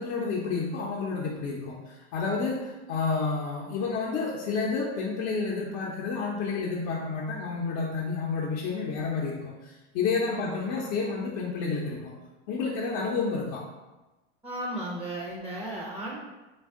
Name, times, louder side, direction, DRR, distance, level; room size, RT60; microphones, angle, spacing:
voice 1, 0.0-12.1 12.5-13.6, left 4 dB, 55° left, -4 dB, 0.7 m, -30 dB
voice 2, 10.3-10.7 14.4-16.2, right 1 dB, 5° right, -3 dB, 0.5 m, -35 dB
3.4 x 2.3 x 3.6 m, 1.1 s
supercardioid pair, 115°, 35 cm